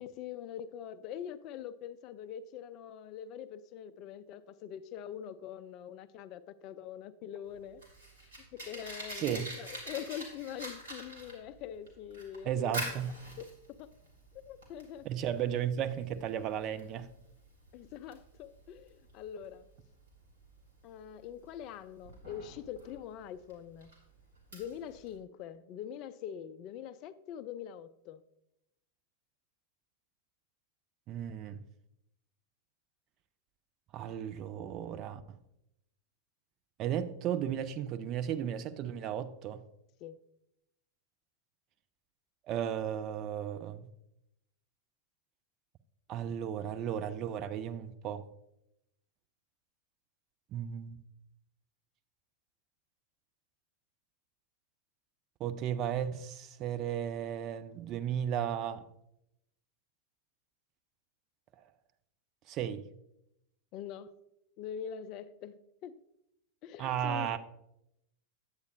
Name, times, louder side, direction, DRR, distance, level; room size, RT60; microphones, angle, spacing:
voice 1, 0.0-7.8 8.2-12.9 13.7-13.9 14.3-15.1 17.7-19.7 20.8-23.9 24.5-28.2 40.0-40.2 63.7-64.1 64.6-66.0 66.6-67.4, left 9 dB, 40° left, 0.4 m, -44 dB
Fire, 7.5-25.1, right 1 dB, 65° right, 2.4 m, -46 dB
voice 2, 9.1-9.5 12.4-13.1 15.0-17.1 31.1-31.6 33.9-35.2 36.8-39.6 42.5-43.9 46.1-48.2 50.5-51.0 55.4-58.8 62.5-62.8 66.8-67.4, right 9 dB, 35° right, 0.5 m, -34 dB
9.5 x 8.1 x 2.6 m
figure-of-eight pair, 90°, 0 cm